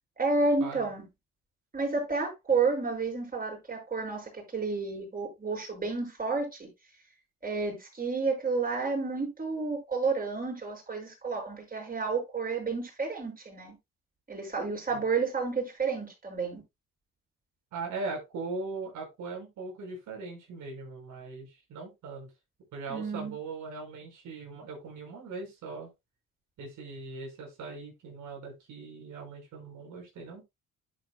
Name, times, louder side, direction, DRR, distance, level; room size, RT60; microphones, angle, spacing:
voice 1, 0.2-1.0 1.7-6.7 7.4-13.8 14.3-16.6 22.9-23.3, right 4 dB, 30° right, 6.3 m, -31 dB
voice 2, 17.7-22.3 22.7-25.9 26.6-30.4, right 3 dB, 80° right, 5.4 m, -40 dB
10.5 x 7.8 x 2.3 m
cardioid pair, 90°, 30 cm